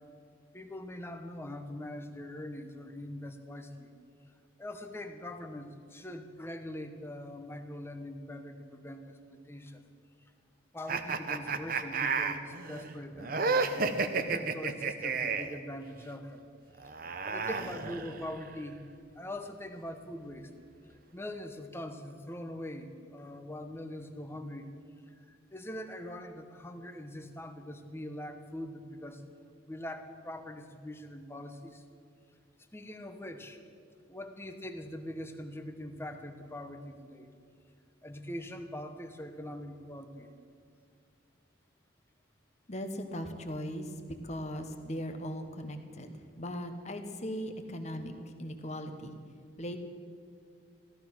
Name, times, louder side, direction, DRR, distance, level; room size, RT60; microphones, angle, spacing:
voice 1, 0.5-3.9 4.6-9.9 10.7-16.5 17.2-18.8 19.1-20.5 20.9-24.7 25.3-29.2 29.7-31.8 32.7-33.6 34.1-37.3 38.0-40.3, left 1 dB, 15° left, 7 dB, 0.9 m, -42 dB
sound 1, 10.9-15.6 16.8-18.5, right 4 dB, 50° right, 0.8 m, -32 dB
voice 2, 42.7-43.9 44.2-46.1 46.4-48.1 48.4-49.1 49.6-49.8, equal, 35° left, 6 dB, 1.2 m, -38 dB
16.0 x 14.0 x 6.0 m, 2.3 s
head